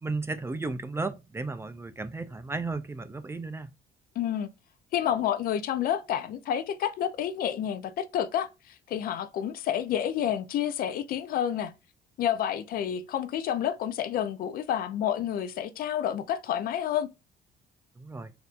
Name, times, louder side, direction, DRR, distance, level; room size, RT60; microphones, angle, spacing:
voice 1, 0.0-3.7 18.0-18.3, right 3 dB, 15° right, 0.4 m, -34 dB
voice 2, 4.2-4.5 4.9-11.7 12.2-17.1, left 10 dB, 60° left, 0.5 m, -29 dB
4.3 x 2.6 x 2.4 m
cardioid pair, 110°, 17 cm